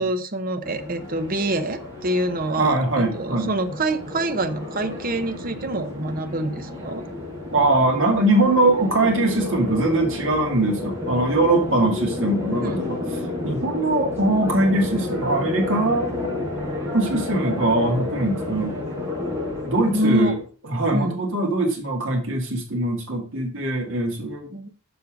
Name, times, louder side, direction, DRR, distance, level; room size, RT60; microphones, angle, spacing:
voice 1, 0.0-7.0 12.6-12.8 19.9-20.4 20.9-21.2 24.5-24.7, right 1 dB, 40° right, 9 dB, 0.8 m, -26 dB
sound 1, 0.6-20.4, left 2 dB, 10° right, 3.5 m, -31 dB
voice 2, 2.6-3.5 7.5-13.0 13.4-16.1 16.9-18.8 19.7-20.3 20.7-24.5, right 2 dB, 60° right, 1 dB, 2.4 m, -21 dB
7.1 x 5.6 x 5.1 m, 0.37 s
head